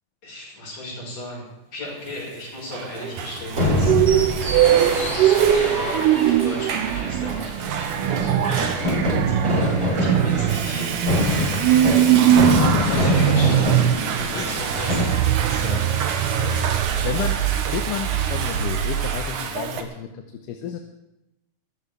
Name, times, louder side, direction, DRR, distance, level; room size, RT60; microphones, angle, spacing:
voice 1, 0.2-4.0 5.0-8.4 9.3-11.0 12.9-13.7 14.1-15.2 15.5-15.9 16.4-16.6 16.9-17.3, left 1 dB, 50° left, -3 dB, 6.9 m, -35 dB
Water / Toilet flush, 2.3-19.8, right 7 dB, 70° right, 2.6 m, -30 dB
sound 1, 3.5-15.0, left 1 dB, 35° right, 8.8 m, -25 dB
sound 2, 3.8-19.2, right 11 dB, 85° right, 2.4 m, -21 dB
voice 2, 12.1-13.5 14.2-14.6 15.6-16.0 17.0-17.4 17.7-20.8, left 9 dB, 80° left, 5 dB, 2.5 m, -31 dB
23.0 x 14.5 x 3.6 m, 0.91 s
omnidirectional pair, 3.8 m